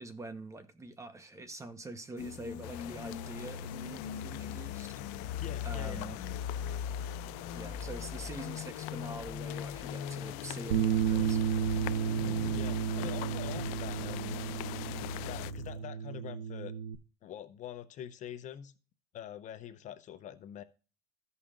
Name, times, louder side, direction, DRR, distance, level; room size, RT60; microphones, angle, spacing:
voice 1, 0.0-4.9 5.6-6.2 7.5-11.6, right 2 dB, 15° right, 1.0 m, -45 dB
sound 1, 2.2-15.8, left 8 dB, 65° left, 1.3 m, -41 dB
sound 2, 2.6-15.5, left 17 dB, 80° left, 0.4 m, -44 dB
voice 2, 5.4-6.2 12.5-14.4 15.3-16.7 17.2-18.7 19.1-20.6, left 10 dB, 45° left, 0.7 m, -45 dB
Bass guitar, 10.7-17.0, right 8 dB, 85° right, 0.7 m, -32 dB
14.5 x 5.5 x 2.5 m
supercardioid pair, 120°, 18 cm